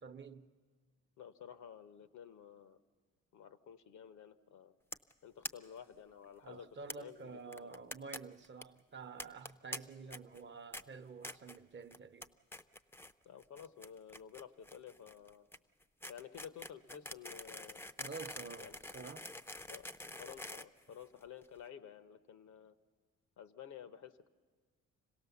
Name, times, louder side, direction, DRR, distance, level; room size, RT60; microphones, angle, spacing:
voice 1, 0.0-0.5 6.4-12.3 18.0-19.3, right 4 dB, 40° right, 0.9 m, -49 dB
voice 2, 1.2-2.8 3.3-4.8 5.2-6.7 7.0-7.7 13.2-15.5 16.1-17.8 18.6-18.7 19.7-22.7 23.4-24.3, left 8 dB, 70° left, 0.9 m, -52 dB
sound 1, 4.9-5.1 5.4-5.5 5.8-5.9 6.1-6.2 6.9-7.0 7.5-8.2 8.4-8.6 9.2-9.8 10.1-10.4 10.7-10.8 11.2-11.6 11.9-12.3 12.5-13.1 13.4-21.4, left 1 dB, 10° left, 0.5 m, -46 dB
26.0 x 17.0 x 7.1 m
cardioid pair, 90°, 30 cm